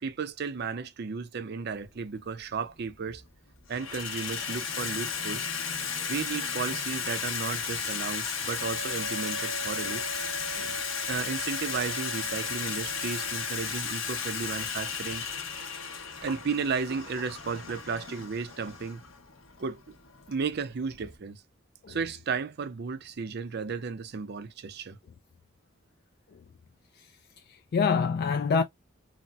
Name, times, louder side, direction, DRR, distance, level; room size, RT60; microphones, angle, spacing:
voice 1, 0.0-3.2 3.7-5.5 6.1-10.0 11.1-15.2 16.2-19.0 19.6-20.0 20.3-21.4 21.9-25.0, right 5 dB, 55° right, 0.5 m, -34 dB
Water tap faucet / Sink (filling or washing), 1.8-1.9 2.8-3.3 3.6-21.2, left 6 dB, 75° left, 0.9 m, -34 dB
Wind instrument woodwind instrument, 8.6-13.7, right 4 dB, 75° right, 1.0 m, -42 dB
voice 2, 27.5-28.6, left 5 dB, 50° left, 0.3 m, -27 dB
4.0 x 2.1 x 2.3 m
head